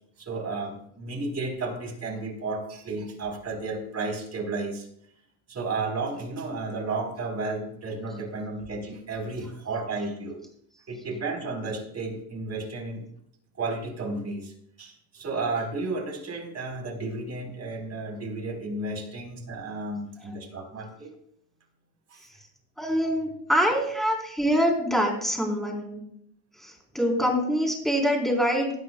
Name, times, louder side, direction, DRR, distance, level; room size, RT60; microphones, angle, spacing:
voice 1, 0.2-4.9 5.5-10.4 10.9-13.1 13.6-14.5 14.8-21.1 22.1-22.2, right 3 dB, 35° right, 2 dB, 4.3 m, -33 dB
voice 2, 22.8-26.0 26.6-28.7, equal, ahead, 0 dB, 4.0 m, -25 dB
17.5 x 11.5 x 2.3 m, 0.68 s
supercardioid pair, 105°, 48 cm